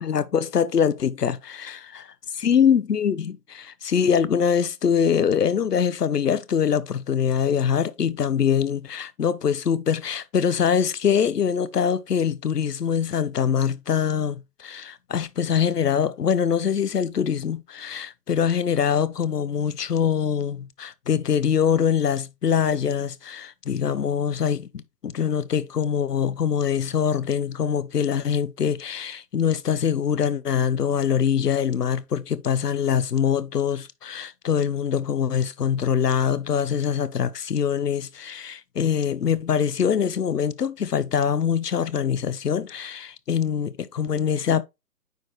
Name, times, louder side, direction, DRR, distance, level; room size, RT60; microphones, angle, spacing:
voice 1, 0.0-1.8 2.4-24.7 25.0-44.6, left 7 dB, 70° left, 0.8 m, -23 dB
9.4 x 4.3 x 3.0 m
hypercardioid pair, 170°, 49 cm